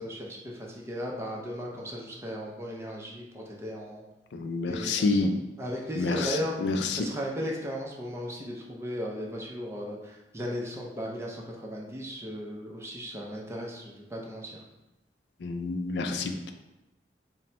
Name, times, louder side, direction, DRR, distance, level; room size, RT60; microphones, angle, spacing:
voice 1, 0.0-4.0 4.7-5.3 5.6-14.6, equal, 15° right, -2 dB, 0.6 m, -36 dB
voice 2, 4.3-5.3 6.0-6.4 6.6-7.0 15.4-16.5, left 3 dB, 80° left, 6 dB, 0.4 m, -28 dB
4.1 x 2.1 x 4.2 m, 0.98 s
head